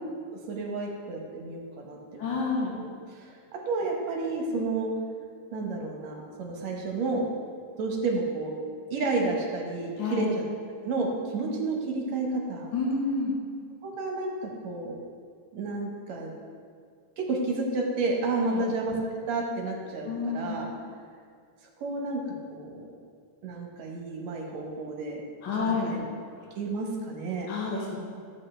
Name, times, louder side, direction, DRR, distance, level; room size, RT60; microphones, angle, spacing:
voice 1, 0.5-4.9 5.5-7.3 7.8-8.5 8.9-10.4 10.8-12.7 13.8-15.0 15.5-16.3 17.2-20.7 21.8-22.2 22.5-22.9 23.4-25.2 25.6-26.0 26.6-27.5, right 3 dB, 70° right, 0 dB, 2.2 m, -31 dB
voice 2, 2.2-2.7 10.0-10.3 12.7-13.3 18.5-18.6 20.1-20.6 25.4-25.9 27.5-28.0, left 4 dB, 50° left, -4 dB, 1.5 m, -29 dB
12.5 x 8.1 x 3.3 m, 2.1 s
omnidirectional pair, 3.5 m